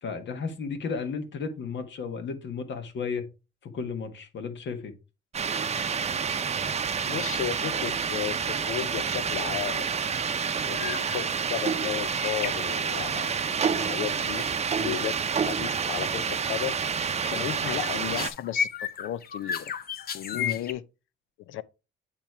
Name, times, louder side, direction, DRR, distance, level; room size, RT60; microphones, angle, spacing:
voice 1, 0.0-3.2 3.6-4.9 14.8-15.0 17.3-17.5 20.3-20.6, left 5 dB, 65° left, 1.5 m, -34 dB
sound 1, 5.3-18.3, right 6 dB, 35° right, 0.6 m, -28 dB
voice 2, 7.1-9.9 10.6-14.4 14.8-16.7 17.2-19.7 20.1-20.8 21.5-21.6, left 13 dB, 85° left, 0.6 m, -34 dB
sound 2, 9.6-10.0 10.2-10.5 10.7-11.2 11.5-13.2 14.4-14.5 15.0-15.4 15.7-15.9 16.2-16.6 17.0-20.7, left 7 dB, 50° left, 0.8 m, -35 dB
8.8 x 3.0 x 4.6 m
cardioid pair, 90°, 20 cm